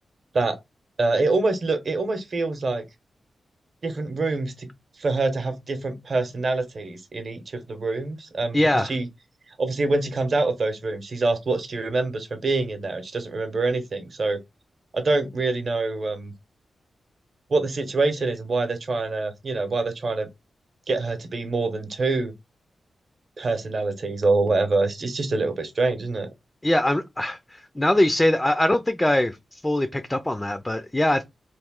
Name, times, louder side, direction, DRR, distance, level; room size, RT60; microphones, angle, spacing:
voice 1, 1.0-2.8 3.8-4.7 5.0-9.0 9.6-14.4 14.9-16.3 17.5-20.3 20.9-22.3 23.4-26.3, right 3 dB, 45° right, 0.8 m, -25 dB
voice 2, 8.5-8.9 26.6-31.2, left 1 dB, 10° left, 0.3 m, -22 dB
3.1 x 2.6 x 3.6 m
wide cardioid pair, 150°, 0 cm